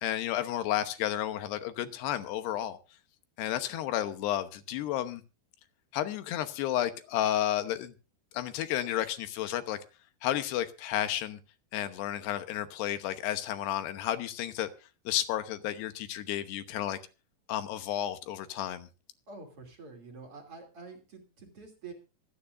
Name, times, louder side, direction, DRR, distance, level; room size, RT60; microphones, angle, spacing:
voice 1, 0.0-2.8 3.4-5.2 5.9-7.9 8.3-9.8 10.2-11.4 11.7-14.7 15.1-17.0 17.5-18.9, left 12 dB, 75° left, 3.0 m, -32 dB
voice 2, 19.3-21.9, right 4 dB, 35° right, 3.4 m, -47 dB
25.0 x 9.4 x 2.6 m
omnidirectional pair, 5.1 m